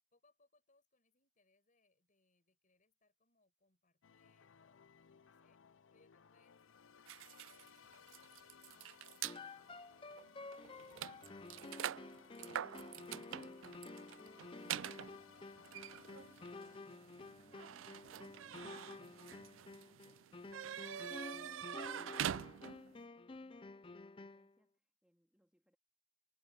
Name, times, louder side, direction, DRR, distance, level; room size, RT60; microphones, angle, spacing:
voice 1, 0.1-15.3, left 3 dB, 40° left, 6.1 m, -78 dB
sound 1, 4.0-16.8, left 6 dB, 85° left, 0.6 m, -62 dB
sound 2, 7.1-9.4 10.1-10.3 10.5-23.0, right 10 dB, 80° right, 0.4 m, -46 dB
sound 3, 9.2-24.5, left 3 dB, 25° left, 0.5 m, -52 dB
voice 2, 16.8-25.8, equal, 5° right, 2.5 m, -76 dB
head